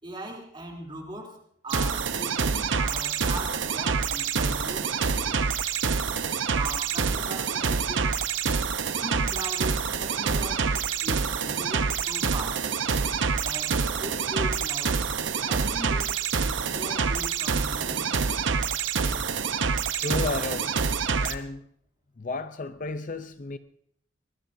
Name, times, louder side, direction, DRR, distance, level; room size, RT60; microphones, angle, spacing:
voice 1, 0.0-5.4 6.5-8.2 9.0-12.6 13.4-14.9 15.4-16.1 16.7-18.2, right 1 dB, 25° right, 3.2 m, -39 dB
sound 1, 1.7-21.3, right 5 dB, 80° right, 0.9 m, -27 dB
voice 2, 20.0-20.7 21.2-21.6 22.2-23.6, left 3 dB, 40° left, 0.6 m, -32 dB
23.5 x 20.0 x 2.7 m
head